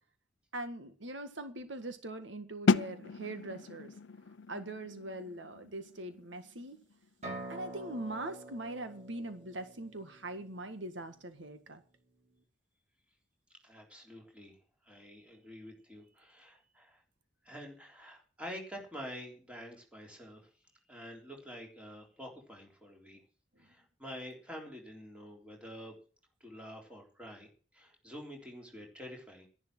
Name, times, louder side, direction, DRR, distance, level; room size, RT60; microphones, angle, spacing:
voice 1, 0.5-3.9 4.5-6.8 7.5-11.8, right 1 dB, 80° right, 8 dB, 1.8 m, -42 dB
sound 1, 2.7-8.4, left 4 dB, 80° left, 0.6 m, -35 dB
sound 2, 7.2-11.0, right 2 dB, 35° right, 5.8 m, -47 dB
voice 2, 13.6-14.5 14.8-17.0 17.4-20.5 20.9-23.2 23.6-25.9 26.4-29.5, equal, 5° right, 0 dB, 3.6 m, -48 dB
12.0 x 11.0 x 6.2 m, 0.40 s
head